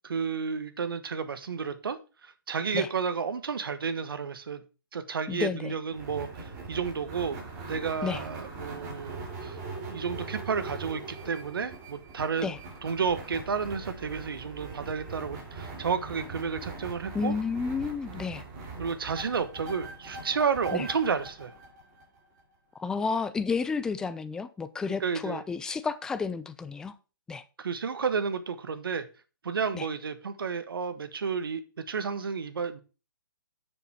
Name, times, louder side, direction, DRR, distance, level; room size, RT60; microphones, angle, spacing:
voice 1, 0.0-4.6 4.9-7.4 7.7-9.6 9.9-12.5 12.8-17.3 18.8-21.5 25.0-25.4 27.6-29.1 29.4-32.8, right 5 dB, 80° right, 1.2 m, -31 dB
voice 2, 5.3-5.7 8.0-8.2 12.4-12.6 17.1-18.4 20.7-20.9 22.8-26.9 27.3-27.4 29.7-29.9, left 5 dB, 5° left, 0.4 m, -31 dB
sound 1, 5.9-22.4, right 3 dB, 25° right, 2.6 m, -41 dB
6.8 x 6.6 x 4.7 m
hypercardioid pair, 150°, 12 cm